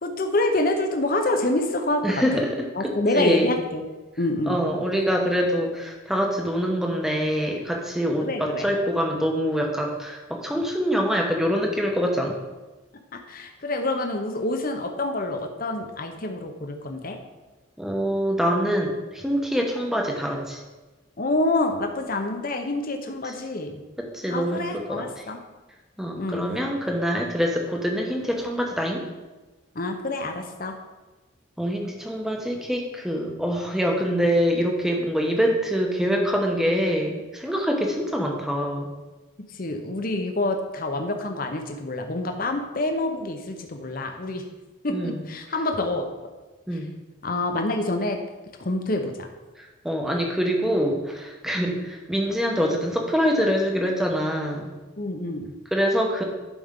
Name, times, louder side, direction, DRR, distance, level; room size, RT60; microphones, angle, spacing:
voice 1, 0.0-2.0 2.3-2.4 2.8-3.8 4.2-4.6 8.2-8.7 13.1-17.2 21.2-23.8 24.3-25.4 26.2-26.5 29.7-30.7 39.5-44.4 44.8-46.1 47.2-48.2 48.6-49.3 51.7-51.8 55.0-55.5, left 2 dB, 45° left, 5 dB, 0.8 m, -27 dB
voice 2, 2.0-3.5 4.5-12.3 17.8-20.6 24.0-25.0 26.0-29.0 31.6-38.9 44.9-45.2 46.7-46.9 49.6-54.7 55.7-56.2, equal, ahead, 0 dB, 0.9 m, -25 dB
11.5 x 5.3 x 3.7 m, 1.2 s
head